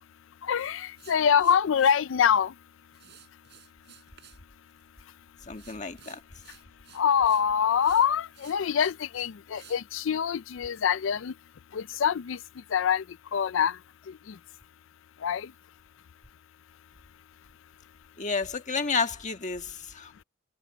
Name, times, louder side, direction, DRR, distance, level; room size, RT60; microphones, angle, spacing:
voice 1, 0.4-2.5 6.9-11.3 11.7-12.4 12.7-13.0 13.3-13.8 15.2-15.5, left 8 dB, 70° left, 0.4 m, -25 dB
sound 1, 0.9-2.0 2.9-4.4 4.7-5.1 5.5-7.5 7.8-9.8, right 10 dB, 60° right, 6.6 m, -54 dB
voice 2, 5.5-6.2 18.2-20.1, left 4 dB, 40° left, 1.6 m, -31 dB
head